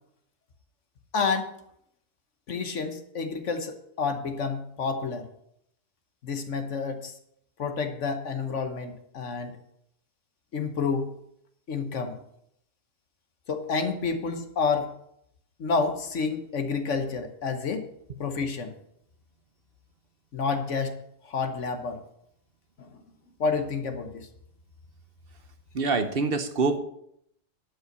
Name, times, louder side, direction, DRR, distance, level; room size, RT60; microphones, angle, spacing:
voice 1, 1.1-1.5 2.5-5.3 6.2-7.1 7.6-9.6 10.5-11.1 11.7-12.2 13.5-14.9 15.6-17.9 18.2-18.7 20.3-22.0 22.8-22.9 23.4-24.3, left 5 dB, 70° left, 7 dB, 1.4 m, -29 dB
voice 2, 25.7-26.8, right 4 dB, 50° right, 9 dB, 1.0 m, -25 dB
11.5 x 5.5 x 6.7 m, 0.74 s
omnidirectional pair, 1.3 m